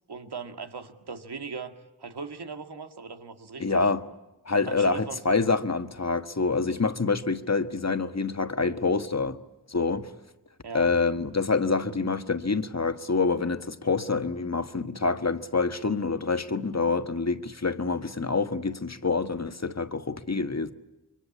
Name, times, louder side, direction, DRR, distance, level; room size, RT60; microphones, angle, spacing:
voice 1, 0.1-3.9 4.6-5.2 10.6-10.9, right 5 dB, 85° right, 2.0 m, -39 dB
voice 2, 3.6-4.0 4.4-9.4 9.7-10.1 10.7-20.7, left 4 dB, 40° left, 1.5 m, -26 dB
26.5 x 23.0 x 8.5 m
cardioid pair, 45°, 39 cm